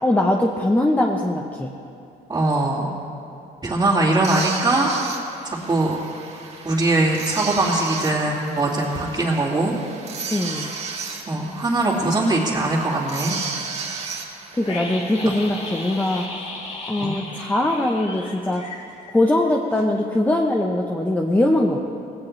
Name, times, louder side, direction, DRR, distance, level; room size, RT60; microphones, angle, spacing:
voice 1, 0.0-1.7 10.3-10.7 14.5-16.3 16.9-18.6 19.1-21.8, left 1 dB, 10° left, 1 dB, 0.9 m, -21 dB
voice 2, 2.3-2.9 3.6-4.9 5.4-5.9 6.6-9.7 10.5-10.6 11.3-13.3 17.0-17.1, right 2 dB, 20° right, -9 dB, 2.5 m, -21 dB
sound 1, 4.2-16.3, right 5 dB, 40° right, 2.0 m, -34 dB
sound 2, 14.6-19.5 19.7-19.8, left 2 dB, 40° left, 2.7 m, -35 dB
19.0 x 17.0 x 3.2 m, 2.7 s
cardioid pair, 110°, 17 cm